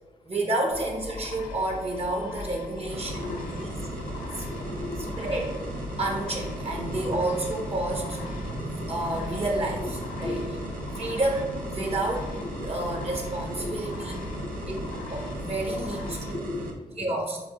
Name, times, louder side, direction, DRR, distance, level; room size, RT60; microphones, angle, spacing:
voice 1, 0.2-3.8 5.2-5.6 6.0-10.4 10.9-12.3 12.6-14.2 14.7-14.8 15.1-16.4 17.0-17.4, right 2 dB, 45° right, 1 dB, 1.3 m, -30 dB
sound 1, 0.7-16.3, left 4 dB, 85° left, 0.6 m, -40 dB
sound 2, 2.9-16.7, right 2 dB, 90° right, 0.7 m, -36 dB
voice 2, 3.0-3.4 4.0-4.1 4.4-5.1 6.8-7.2 9.8-10.5 11.0-11.2 11.8-11.9 12.4-12.7 13.0-13.1 13.6-13.8 14.4-15.0 16.3-17.1, left 3 dB, 35° left, 5 dB, 0.5 m, -38 dB
3.8 x 3.6 x 3.7 m, 1.1 s
supercardioid pair, 45°, 14 cm